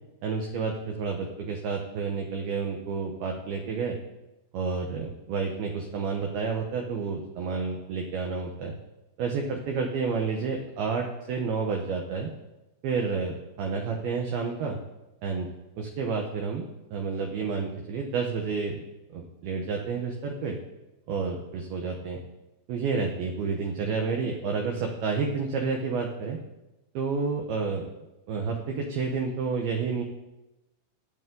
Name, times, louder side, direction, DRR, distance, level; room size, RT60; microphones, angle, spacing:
voice 1, 0.2-4.0 4.5-8.8 9.2-12.3 12.8-14.8 15.2-15.5 15.8-18.8 19.1-20.6 21.1-22.2 22.7-26.4 26.9-27.8 28.3-30.0, right 5 dB, 70° right, 2 dB, 2.4 m, -30 dB
21.5 x 8.4 x 3.8 m, 0.99 s
omnidirectional pair, 5.7 m